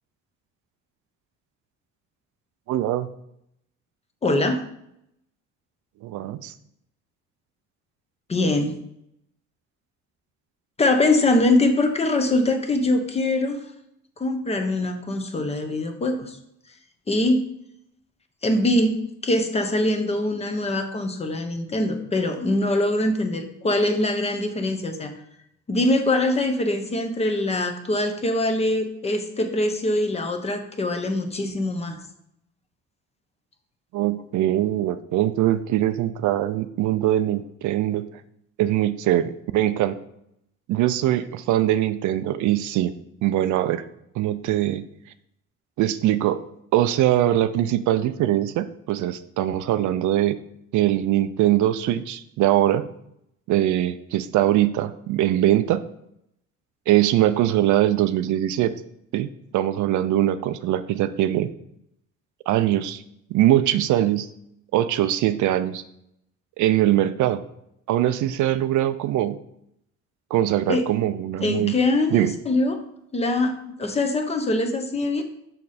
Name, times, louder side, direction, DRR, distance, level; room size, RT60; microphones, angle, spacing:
voice 1, 2.7-3.1 6.0-6.5 33.9-38.1 38.6-40.0 40.7-42.9 43.2-43.8 44.2-44.8 45.8-46.4 46.7-50.4 50.7-52.9 53.5-55.8 56.9-58.7 59.1-61.5 62.5-63.0 63.3-64.3 64.7-65.8 66.6-67.4 67.9-69.4 70.3-71.7 72.1-72.3, right 13 dB, 75° right, 12 dB, 0.6 m, -22 dB
voice 2, 4.2-4.6 8.3-8.8 10.8-13.6 14.2-16.4 17.1-17.4 18.4-19.0 19.2-25.2 25.7-32.0 70.7-70.9 71.4-72.8 73.1-75.2, left 2 dB, 20° left, 6 dB, 0.8 m, -23 dB
6.6 x 6.3 x 4.2 m, 0.77 s
cardioid pair, 165°, 30 cm